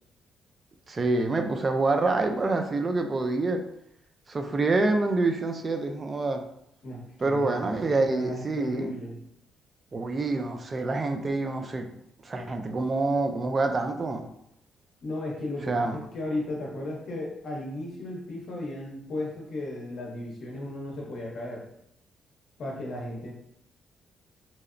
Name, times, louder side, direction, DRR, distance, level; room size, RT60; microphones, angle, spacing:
voice 1, 0.9-3.6 4.3-6.4 7.2-8.9 9.9-11.9 12.2-14.3 15.7-16.0, right 3 dB, 35° right, 6 dB, 0.3 m, -26 dB
voice 2, 6.8-9.2 15.0-21.7 22.6-23.3, left 1 dB, 60° left, -2 dB, 0.7 m, -35 dB
2.8 x 2.0 x 2.4 m, 0.74 s
cardioid pair, 90°, 0 cm